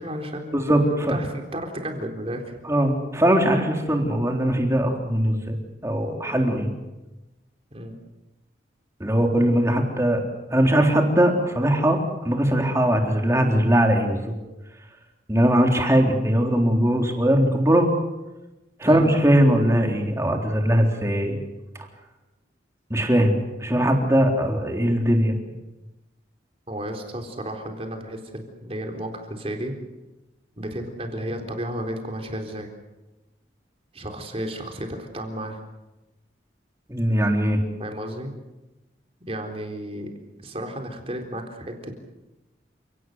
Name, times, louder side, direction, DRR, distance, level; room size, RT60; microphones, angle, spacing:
voice 1, 0.0-0.6 1.1-2.5 7.7-8.0 18.9-19.2 26.7-29.7 30.6-32.7 33.9-35.6 37.8-38.3 39.3-40.1 40.4-41.9, right 1 dB, 30° right, 4 dB, 4.0 m, -33 dB
voice 2, 0.5-1.1 2.7-5.6 5.8-6.7 9.0-10.2 10.5-14.3 15.3-17.9 18.8-21.4 22.9-25.3 36.9-37.6, equal, 15° right, 2 dB, 3.7 m, -20 dB
30.0 x 18.5 x 8.0 m, 1.1 s
head